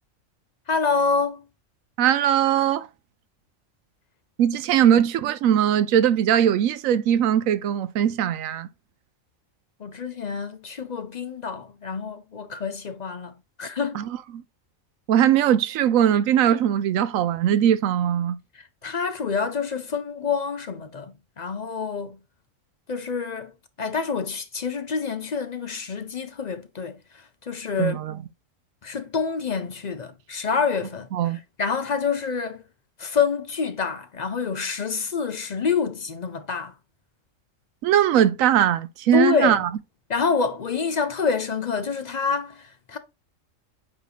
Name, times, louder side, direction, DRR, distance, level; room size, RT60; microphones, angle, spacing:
voice 1, 0.7-1.4 4.8-5.0 9.8-13.3 13.6-14.1 18.5-22.2 22.9-23.5 23.8-27.0 27.4-28.0 28.8-31.1 31.6-32.6 33.0-36.7 39.1-39.6 40.1-43.0, left 5 dB, 45° left, 0.5 m, -27 dB
voice 2, 2.0-2.9 4.4-8.7 13.9-14.0 14.3-14.4 15.1-18.4 27.8-28.2 31.1-31.4 37.8-39.7, right 10 dB, 85° right, 1.0 m, -20 dB
8.7 x 3.0 x 3.9 m
omnidirectional pair, 1.4 m